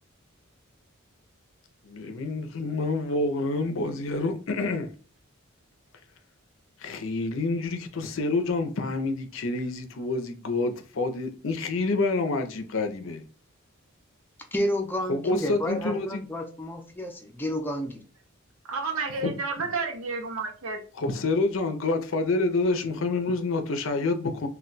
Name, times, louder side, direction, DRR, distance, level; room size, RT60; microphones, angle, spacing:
voice 1, 1.8-4.9 6.8-13.2 15.1-16.2 19.2-19.3 21.0-24.5, left 3 dB, 65° left, 0.5 m, -28 dB
voice 2, 14.5-18.0, equal, 10° left, 0.5 m, -30 dB
voice 3, 18.7-20.8, right 4 dB, 80° right, 0.7 m, -31 dB
2.3 x 2.2 x 3.9 m
head